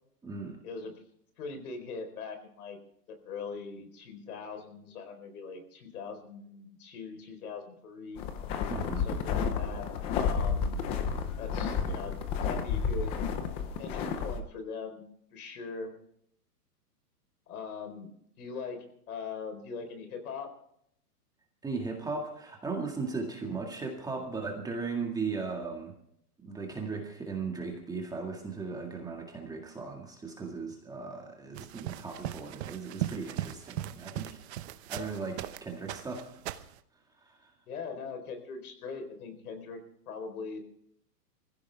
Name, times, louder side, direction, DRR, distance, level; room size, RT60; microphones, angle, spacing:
voice 1, 0.2-0.6 8.7-9.1 21.6-25.9 26.4-36.4 37.2-37.5, right 4 dB, 10° right, 1 dB, 1.9 m, -37 dB
voice 2, 1.4-2.8 3.1-8.3 9.0-9.9 10.1-10.8 11.4-13.1 13.8-15.0 15.3-15.9 17.5-18.1 18.4-20.5 23.4-23.7 37.7-39.8 40.1-40.6, left 5 dB, 65° left, 7 dB, 4.3 m, -41 dB
sound 1, 8.2-14.4, left 6 dB, 15° left, 0.5 m, -31 dB
sound 2, 31.5-35.6 35.9-36.8, right 13 dB, 40° right, 0.9 m, -38 dB
23.5 x 15.5 x 3.5 m, 0.71 s
hypercardioid pair, 150°, 48 cm